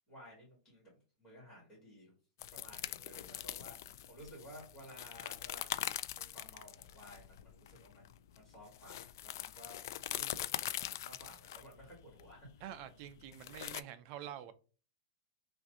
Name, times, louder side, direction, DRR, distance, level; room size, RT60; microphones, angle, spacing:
voice 1, 0.1-0.9 1.2-2.1 2.5-12.6, equal, 10° left, 2.0 m, -56 dB
sound 1, 2.4-13.8, left 12 dB, 60° left, 0.3 m, -43 dB
voice 2, 12.6-14.5, right 11 dB, 35° right, 0.5 m, -47 dB
5.8 x 2.6 x 2.7 m
supercardioid pair, 175°, 2 cm